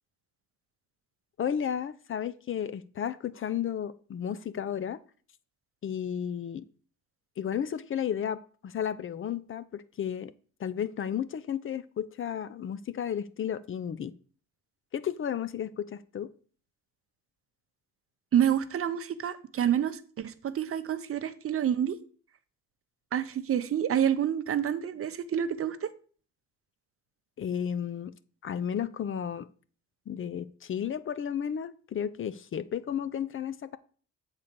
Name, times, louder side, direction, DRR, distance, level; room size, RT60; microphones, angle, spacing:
voice 1, 1.4-5.0 5.8-6.6 7.4-10.3 10.6-14.1 14.9-16.3 27.4-28.1 28.4-29.5 30.1-33.8, left 8 dB, 45° left, 15 dB, 0.5 m, -33 dB
voice 2, 18.3-22.0 23.1-25.9, right 9 dB, 50° right, 12 dB, 0.7 m, -28 dB
7.2 x 4.0 x 6.7 m, 0.43 s
cardioid pair, 90°, 30 cm